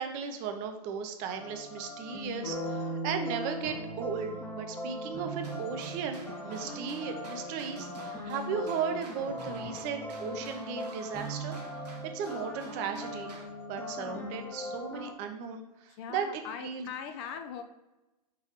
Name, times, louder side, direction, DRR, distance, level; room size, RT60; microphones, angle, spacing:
voice 1, 0.0-11.6 12.1-13.3 13.7-16.9, right 6 dB, 40° right, 6 dB, 0.7 m, -36 dB
sound 1, 1.3-15.1, left 1 dB, 10° left, 0.8 m, -40 dB
sound 2, 2.4-6.5, right 1 dB, 65° left, 1.3 m, -40 dB
sound 3, 5.3-13.5, right 3 dB, 80° right, 1.1 m, -51 dB
voice 2, 15.9-17.6, left 7 dB, 40° left, 6 dB, 0.5 m, -40 dB
4.4 x 3.8 x 3.0 m, 1.0 s
hypercardioid pair, 110°, 20 cm